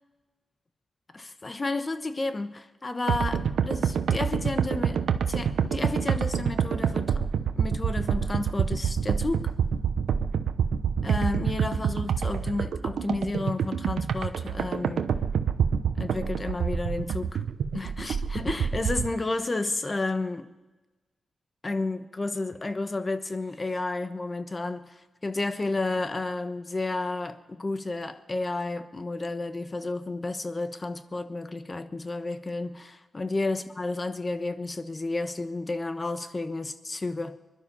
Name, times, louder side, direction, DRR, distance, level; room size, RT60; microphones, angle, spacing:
voice 1, 1.1-7.2 7.6-9.5 11.0-15.2 16.0-17.4 17.7-20.5 21.6-37.4, left 2 dB, 35° left, 10 dB, 1.1 m, -31 dB
sound 1, 3.1-19.1, right 7 dB, 90° right, 0.8 m, -27 dB
21.0 x 11.5 x 5.5 m, 1.2 s
cardioid pair, 70°, 0 cm